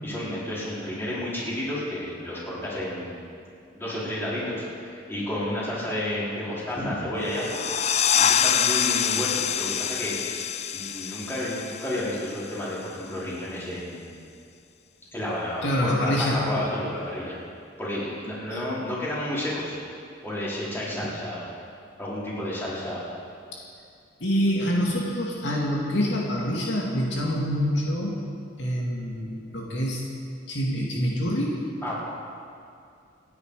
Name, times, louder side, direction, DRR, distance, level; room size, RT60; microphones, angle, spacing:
voice 1, 0.0-3.1 3.7-10.2 10.7-14.2 15.1-17.4 17.8-19.8 20.2-21.4 22.0-23.0 31.8-31.9, left 1 dB, 10° left, -8 dB, 4.5 m, -31 dB
sound 1, 7.3-12.6, left 9 dB, 35° left, 0.4 m, -26 dB
voice 2, 15.6-16.5 18.5-18.6 23.5-23.6 24.2-28.2 28.6-30.0 30.5-31.7, equal, 75° left, -3 dB, 2.3 m, -26 dB
27.0 x 9.9 x 5.0 m, 2.4 s
head